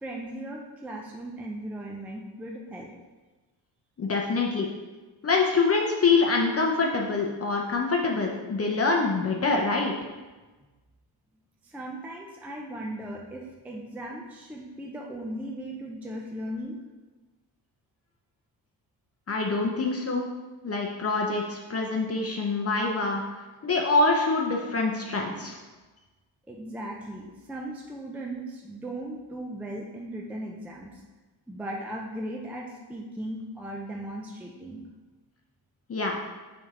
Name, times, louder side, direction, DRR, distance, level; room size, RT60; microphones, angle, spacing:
voice 1, 0.0-2.9 11.6-16.8 26.5-30.9 31.5-34.8, right 1 dB, 5° right, -1 dB, 0.5 m, -37 dB
voice 2, 4.0-4.7 5.2-9.9 19.3-20.3 20.6-23.2 23.6-25.6 35.9-36.2, left 3 dB, 35° left, 0 dB, 0.7 m, -25 dB
6.9 x 3.5 x 4.9 m, 1.2 s
wide cardioid pair, 155°, 44 cm